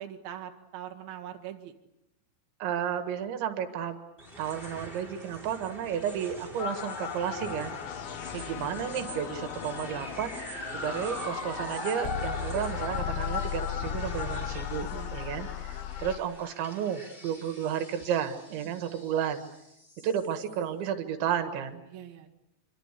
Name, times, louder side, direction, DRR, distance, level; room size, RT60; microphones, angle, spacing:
voice 1, 0.0-1.7 8.0-8.1 14.9-15.2 21.9-22.3, right 10 dB, 60° right, 4 dB, 3.6 m, -42 dB
voice 2, 2.6-4.0 4.4-7.8 8.3-10.4 10.7-19.4 20.0-21.8, right 9 dB, 85° right, 8 dB, 3.9 m, -32 dB
sound 1, 4.2-20.6, equal, 10° left, 4.3 m, -42 dB
sound 2, 6.6-16.2, left 10 dB, 85° left, 3.5 m, -36 dB
26.5 x 24.5 x 8.3 m, 0.82 s
omnidirectional pair, 5.2 m